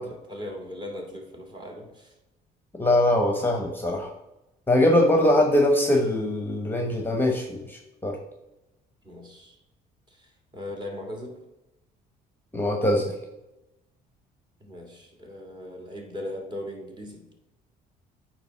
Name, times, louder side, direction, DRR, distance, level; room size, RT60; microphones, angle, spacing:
voice 1, 0.0-2.2 5.1-5.5 9.0-9.6 10.1-11.4 14.6-17.3, left 1 dB, 25° right, 1 dB, 1.8 m, -39 dB
voice 2, 2.8-4.1 4.7-8.2 12.5-13.1, left 1 dB, 10° left, 3 dB, 0.9 m, -22 dB
8.9 x 3.1 x 5.7 m, 0.94 s
cardioid pair, 110°, 17 cm